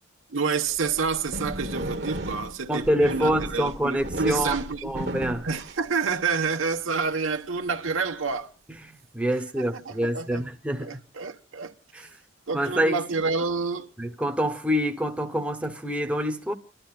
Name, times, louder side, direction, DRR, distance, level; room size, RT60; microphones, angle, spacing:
voice 1, 0.3-4.9 5.4-8.5 9.6-10.4 10.8-11.7 12.5-13.9, right 5 dB, 85° right, 1.0 m, -28 dB
sound 1, 0.7-6.4, right 1 dB, 55° right, 1.0 m, -34 dB
voice 2, 2.7-5.5 8.8-10.9 11.9-12.1 12.5-13.0 14.0-16.5, equal, 5° right, 0.8 m, -26 dB
30.0 x 12.0 x 2.3 m
head